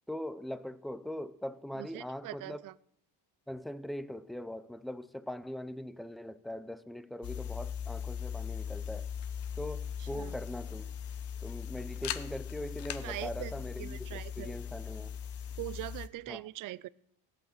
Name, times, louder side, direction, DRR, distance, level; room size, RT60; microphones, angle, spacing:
voice 1, 0.1-2.6 3.5-9.1 9.6-10.9 11.4-15.2 16.3-16.4, left 1 dB, ahead, 0.5 m, -41 dB
voice 2, 1.7-2.7 10.0-10.3 13.0-13.5 13.8-14.5 15.6-16.9, right 17 dB, 50° right, 0.4 m, -42 dB
sound 1, 7.2-16.1, left 8 dB, 65° left, 1.0 m, -39 dB
16.5 x 8.9 x 6.6 m
cardioid pair, 115°, 43 cm